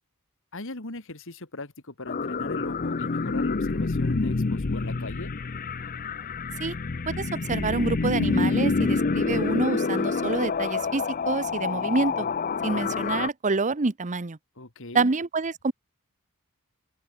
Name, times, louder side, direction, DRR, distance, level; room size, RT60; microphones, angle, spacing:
voice 1, 0.5-5.3 14.6-15.1, left 2 dB, 60° left, 2.6 m, -39 dB
sound 1, 2.1-13.3, left 4 dB, 40° left, 0.6 m, -27 dB
voice 2, 7.1-12.3 12.6-14.4 14.9-15.7, right 3 dB, 35° right, 0.8 m, -27 dB
open air
head